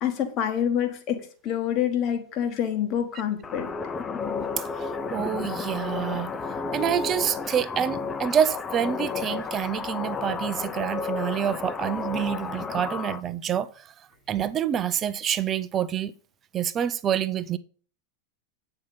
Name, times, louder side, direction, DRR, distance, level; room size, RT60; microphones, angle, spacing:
voice 1, 0.0-3.7, left 9 dB, 40° left, 1.4 m, -27 dB
sound 1, 3.4-13.2, left 5 dB, 20° left, 0.5 m, -32 dB
voice 2, 4.6-6.3 6.7-13.9 14.3-16.1 16.5-17.6, right 9 dB, 25° right, 0.5 m, -27 dB
8.7 x 4.5 x 5.4 m
figure-of-eight pair, 90°, 0 cm